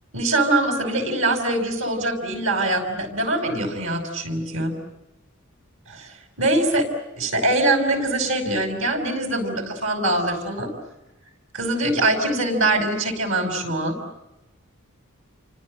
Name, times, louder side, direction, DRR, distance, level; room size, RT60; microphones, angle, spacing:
voice 1, 0.1-4.7 5.9-6.9 7.2-10.7 11.5-14.0, right 2 dB, 65° right, 6 dB, 6.0 m, -23 dB
29.5 x 25.0 x 7.8 m, 0.97 s
head